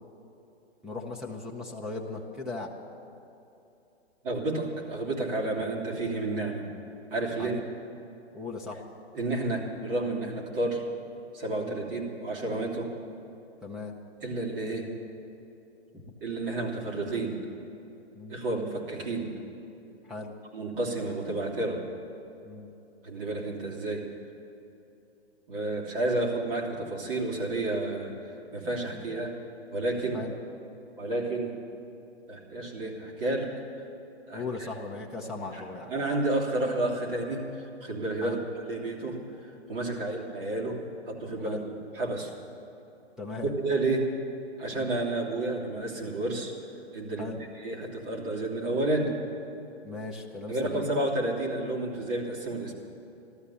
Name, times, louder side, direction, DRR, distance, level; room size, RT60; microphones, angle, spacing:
voice 1, 0.8-2.7 7.4-7.8 8.3-8.8 11.6-11.8 13.6-13.9 15.9-16.1 18.2-18.4 20.1-20.3 22.4-22.7 28.9-29.0 30.1-30.4 34.3-35.9 38.2-38.4 39.9-40.1 41.4-41.7 43.2-43.5 44.7-44.9 47.2-47.5 49.8-50.9, left 3 dB, ahead, -1 dB, 0.8 m, -38 dB
voice 2, 4.2-6.7 7.1-7.6 9.1-10.8 11.3-12.9 14.2-14.9 16.2-17.4 18.3-19.3 20.5-21.8 23.0-24.0 25.5-29.3 29.7-30.2 31.0-31.6 32.3-33.5 34.3-34.7 35.5-35.6 35.9-39.2 39.7-41.6 41.9-42.3 43.4-44.1 44.6-46.5 46.9-47.3 47.5-49.2 50.5-52.7, right 2 dB, 55° right, -2 dB, 3.2 m, -31 dB
14.0 x 13.0 x 7.0 m, 2.8 s
hypercardioid pair, 135°, 33 cm